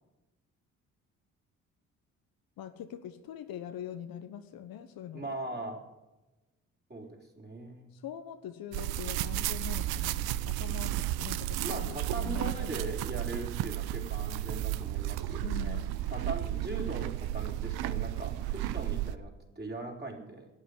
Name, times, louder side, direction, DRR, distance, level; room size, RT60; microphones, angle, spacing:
voice 1, 2.6-5.2 5.5-5.6 8.0-12.7 15.4-16.0, left 9 dB, 65° left, 9 dB, 1.1 m, -43 dB
voice 2, 5.1-5.8 6.9-7.9 11.6-20.5, right 2 dB, 25° right, 0 dB, 4.0 m, -40 dB
sound 1, 8.7-19.2, right 14 dB, 70° right, 0.7 m, -33 dB
11.5 x 8.6 x 9.5 m, 1.1 s
hypercardioid pair, 50°, 39 cm